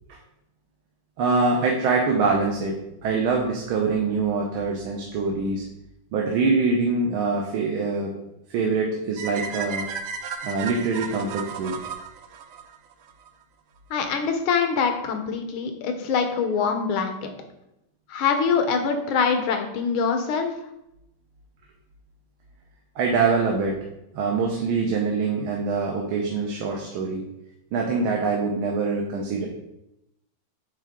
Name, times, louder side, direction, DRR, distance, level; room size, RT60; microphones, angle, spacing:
voice 1, 1.2-5.6 6.1-8.1 8.5-9.9 10.4-11.8 23.0-23.8 24.1-27.2 27.7-29.5, right 4 dB, 90° right, -1 dB, 1.7 m, -24 dB
sound 1, 9.2-13.3, right 5 dB, 75° right, 1.0 m, -34 dB
voice 2, 13.9-17.3 18.1-20.5, left 5 dB, 85° left, 6 dB, 1.7 m, -24 dB
8.8 x 3.6 x 3.6 m, 0.86 s
omnidirectional pair, 2.2 m